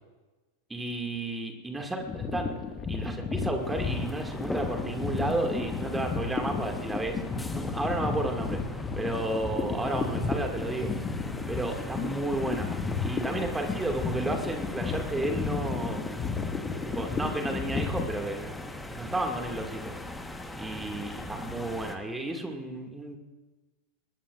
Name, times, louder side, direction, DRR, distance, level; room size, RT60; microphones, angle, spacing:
voice 1, 0.7-2.0 2.3-2.5 2.9-7.2 7.5-10.9 11.5-12.7 13.0-16.1 16.8-19.9 20.6-23.2, right 2 dB, 10° right, 3 dB, 2.1 m, -32 dB
sound 1, 2.0-18.1, left 4 dB, 20° left, 1.7 m, -33 dB
sound 2, 3.6-22.0, left 1 dB, 5° left, 1.2 m, -40 dB
21.5 x 21.0 x 2.5 m, 1.2 s
figure-of-eight pair, 90°, 0 cm